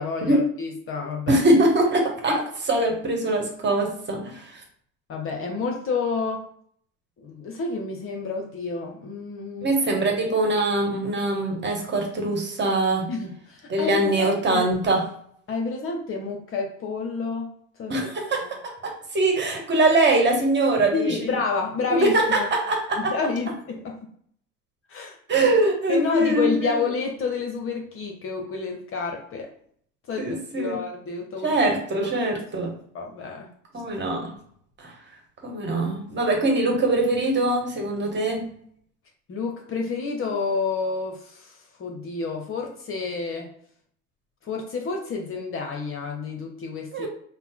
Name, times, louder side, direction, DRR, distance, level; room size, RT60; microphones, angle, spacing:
voice 1, 0.0-1.4 5.1-6.4 7.2-9.7 13.1-14.6 15.5-17.9 18.2-18.3 20.9-22.5 23.0-24.0 24.9-25.2 25.9-29.5 30.1-31.5 32.0-32.1 32.6-33.5 39.3-43.5 44.4-47.1, left 4 dB, 30° left, 1 dB, 0.9 m, -29 dB
voice 2, 1.3-4.6 9.6-13.1 13.7-15.1 17.9-21.3 21.9-23.1 25.3-26.8 30.2-30.8 31.4-32.8 33.7-34.3 34.8-34.9 35.4-38.6 46.9-47.1, right 2 dB, 25° right, 1 dB, 1.4 m, -23 dB
5.6 x 2.1 x 3.7 m, 0.64 s
figure-of-eight pair, 70°, 41 cm